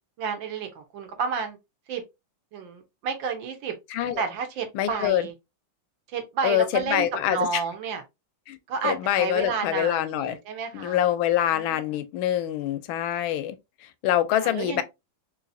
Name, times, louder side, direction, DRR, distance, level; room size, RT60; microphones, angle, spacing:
voice 1, 0.2-1.6 1.9-2.0 2.5-3.7 4.2-5.3 6.1-8.0 8.7-11.0 11.5-12.0 14.3-14.8, right 5 dB, 70° right, 1.5 m, -31 dB
voice 2, 3.9-4.2 4.7-5.3 6.4-7.6 8.5-8.6 8.8-10.4 10.7-13.6 14.0-14.8, left 11 dB, 80° left, 1.4 m, -25 dB
3.9 x 2.8 x 2.5 m
omnidirectional pair, 2.2 m